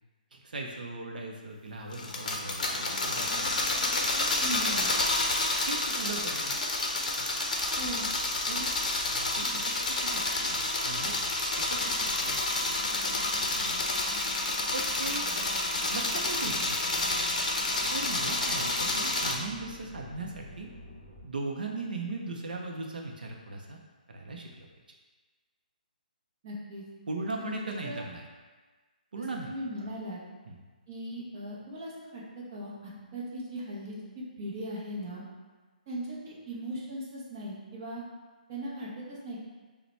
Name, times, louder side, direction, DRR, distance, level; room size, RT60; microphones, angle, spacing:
voice 1, 0.3-4.0 5.6-6.6 8.5-8.7 9.1-11.2 11.7-12.4 13.0-13.8 14.7-15.3 15.9-17.2 17.9-18.7 19.0-20.7 21.2-23.8 24.1-24.7 27.1-28.2 29.1-29.5 29.8-29.9 30.5-30.6, right 3 dB, 75° right, 1 dB, 0.6 m, -39 dB
sound 1, 1.9-19.4, left 2 dB, 55° left, 0.6 m, -29 dB
voice 2, 4.4-5.0 7.8-8.1 26.4-26.8 27.4-27.6 27.8-28.0 29.1-30.2 30.9-32.2 32.5-35.2 35.9-38.0 38.5-39.4, equal, 20° right, -6 dB, 0.7 m, -38 dB
sound 2, 7.7-21.2, equal, 5° right, 1.1 m, -49 dB
5.2 x 2.1 x 3.2 m, 1.3 s
hypercardioid pair, 180°, 5 cm